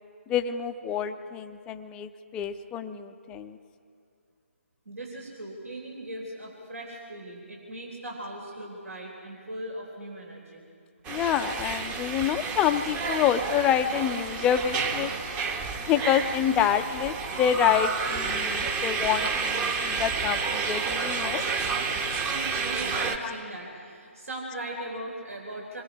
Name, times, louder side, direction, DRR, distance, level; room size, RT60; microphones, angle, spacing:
voice 1, 0.3-3.6 11.1-15.1 15.9-21.4 23.2-23.3, left 9 dB, 10° left, 8 dB, 0.5 m, -27 dB
voice 2, 4.9-10.6 22.6-25.8, right 1 dB, 75° right, 0 dB, 3.6 m, -39 dB
sound 1, 11.0-23.2, right 5 dB, 15° right, 0.9 m, -30 dB
26.0 x 21.0 x 4.9 m, 2.4 s
figure-of-eight pair, 145°, 8 cm